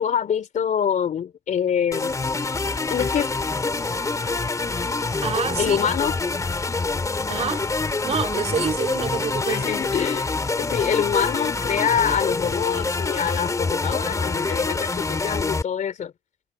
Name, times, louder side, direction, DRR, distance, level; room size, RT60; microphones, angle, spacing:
voice 1, 0.0-2.1 2.9-3.3 5.6-6.1 9.5-10.3 10.6-16.1, left 8 dB, 50° left, 3.5 m, -25 dB
sound 1, 1.9-15.6, left 3 dB, 20° left, 2.2 m, -26 dB
voice 2, 5.0-5.8 7.3-7.6 8.0-9.6, right 6 dB, 40° right, 2.5 m, -27 dB
cardioid pair, 110°, 17 cm